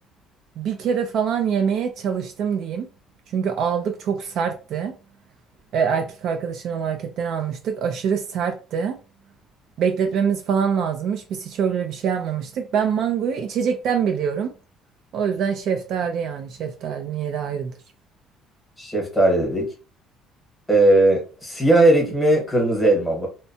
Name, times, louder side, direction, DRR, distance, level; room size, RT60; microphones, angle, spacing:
voice 1, 0.6-2.9 3.3-5.0 5.7-9.0 9.8-14.5 15.1-17.7, right 7 dB, 50° right, 0.3 m, -24 dB
voice 2, 18.8-19.7 20.7-23.3, right 2 dB, 5° left, 0.9 m, -18 dB
2.7 x 2.1 x 2.6 m
cardioid pair, 175°, 0 cm